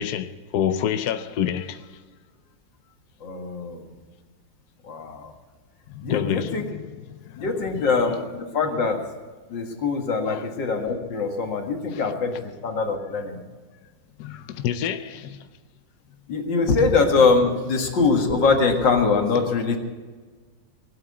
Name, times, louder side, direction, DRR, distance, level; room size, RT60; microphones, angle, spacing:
voice 1, 0.0-1.9 5.9-6.7 7.1-7.5 10.2-10.5 14.2-15.5, left 9 dB, 70° left, 1.1 m, -28 dB
voice 2, 3.2-3.9 4.8-5.3 6.0-6.6 7.4-9.0 9.5-13.4 16.3-19.8, left 4 dB, 85° left, 2.5 m, -23 dB
20.0 x 8.7 x 8.4 m
omnidirectional pair, 1.9 m